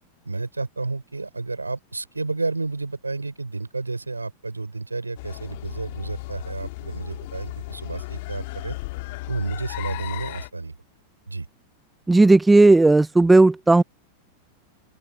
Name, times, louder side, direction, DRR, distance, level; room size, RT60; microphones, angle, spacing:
voice 1, 0.2-8.8 9.3-10.7 11.3-11.5, right 3 dB, 80° right, 4.9 m, -31 dB
sound 1, 5.2-10.5, left 22 dB, 50° left, 2.9 m, -35 dB
voice 2, 12.1-13.8, right 2 dB, 10° right, 0.4 m, -14 dB
open air
figure-of-eight pair, 90°, 0 cm